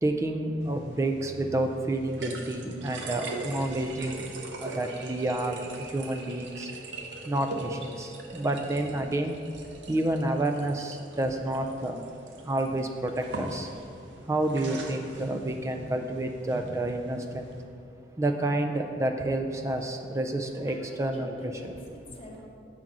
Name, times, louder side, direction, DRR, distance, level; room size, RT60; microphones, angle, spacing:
voice 1, 0.0-4.3 4.6-6.7 7.2-9.4 9.9-12.1 12.4-13.7 14.3-17.5 18.2-21.7, right 1 dB, 15° right, 5 dB, 0.3 m, -29 dB
sound 1, 0.6-17.6, right 2 dB, 90° right, 0.7 m, -41 dB
voice 2, 19.9-20.3 20.7-22.5, equal, 30° left, -3 dB, 0.9 m, -46 dB
6.0 x 3.8 x 5.9 m, 2.7 s
head